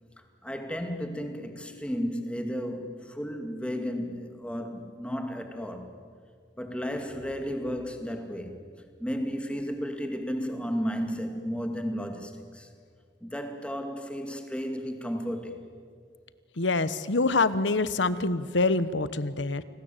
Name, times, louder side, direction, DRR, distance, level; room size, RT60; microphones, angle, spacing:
voice 1, 0.4-5.9 6.6-8.6 9.0-12.7 13.2-15.7, equal, 5° left, 5 dB, 2.3 m, -33 dB
voice 2, 16.6-19.6, left 3 dB, 85° left, 15 dB, 1.1 m, -25 dB
29.0 x 20.0 x 8.9 m, 2.1 s
head